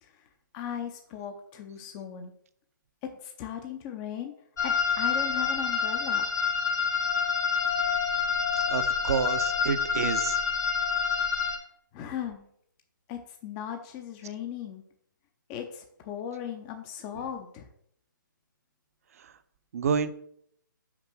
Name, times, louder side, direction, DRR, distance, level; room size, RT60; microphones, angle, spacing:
voice 1, 0.0-2.3 3.0-4.3 4.6-6.3 11.9-12.5 13.1-14.8 15.5-17.7, left 9 dB, 20° left, 6 dB, 0.6 m, -38 dB
sound 1, 4.6-11.6, left 6 dB, 60° left, 2.1 m, -27 dB
voice 2, 8.7-10.4 19.2-19.3 19.7-20.1, right 6 dB, 45° right, 13 dB, 0.6 m, -29 dB
5.9 x 5.1 x 6.1 m, 0.69 s
hypercardioid pair, 155°, 11 cm